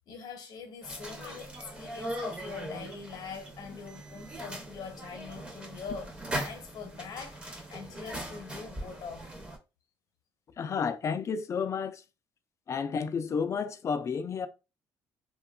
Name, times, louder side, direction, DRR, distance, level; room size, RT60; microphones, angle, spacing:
voice 1, 0.1-6.1 6.4-9.3, left 5 dB, 60° left, 0.8 m, -43 dB
sound 1, 0.8-9.6, right 1 dB, 15° right, 0.7 m, -40 dB
voice 2, 10.6-12.0 12.7-14.5, left 6 dB, 40° left, 0.4 m, -31 dB
2.8 x 2.2 x 2.2 m
cardioid pair, 100°, 8 cm